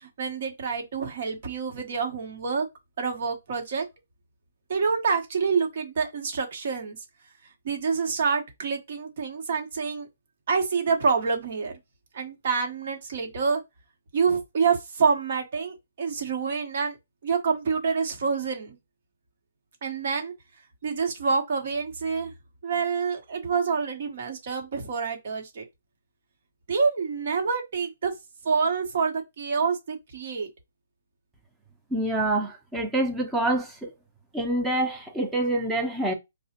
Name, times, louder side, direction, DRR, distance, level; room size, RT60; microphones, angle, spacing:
voice 1, 0.0-2.7 3.0-3.9 4.7-7.0 7.6-10.1 10.5-11.8 12.1-13.6 14.1-17.0 17.2-18.8 19.8-20.3 20.8-22.3 22.6-25.6 26.7-28.1 28.4-30.5, right 5 dB, 55° right, 1.0 m, -27 dB
voice 2, 31.9-33.9 34.3-36.1, right 1 dB, 5° right, 0.7 m, -26 dB
4.7 x 2.1 x 2.8 m
hypercardioid pair, 150°, 0 cm